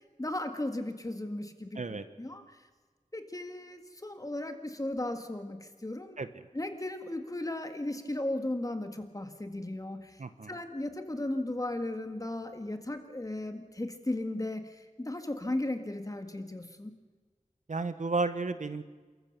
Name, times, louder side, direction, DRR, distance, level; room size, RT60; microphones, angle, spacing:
voice 1, 0.2-2.4 3.1-6.2 6.5-10.2 10.5-16.9, left 1 dB, 25° left, 7 dB, 1.8 m, -36 dB
voice 2, 1.7-2.1 6.2-6.3 10.2-10.6 17.7-18.8, right 3 dB, 65° right, 11 dB, 1.1 m, -32 dB
28.5 x 14.0 x 6.8 m, 1.4 s
wide cardioid pair, 75°, 13 cm